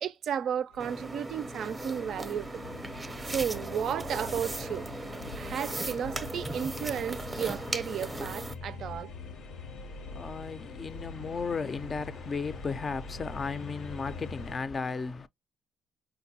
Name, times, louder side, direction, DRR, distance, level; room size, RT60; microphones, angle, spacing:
voice 1, 0.0-2.6 3.3-5.0 5.4-9.1, right 8 dB, 70° right, 0.4 m, -33 dB
sound 1, 0.7-14.6, left 3 dB, 85° left, 0.7 m, -44 dB
sound 2, 0.8-8.5, right 2 dB, 15° right, 0.5 m, -38 dB
voice 2, 9.1-15.3, left 5 dB, 40° left, 0.4 m, -35 dB
4.6 x 2.1 x 2.6 m
cardioid pair, 90°, 0 cm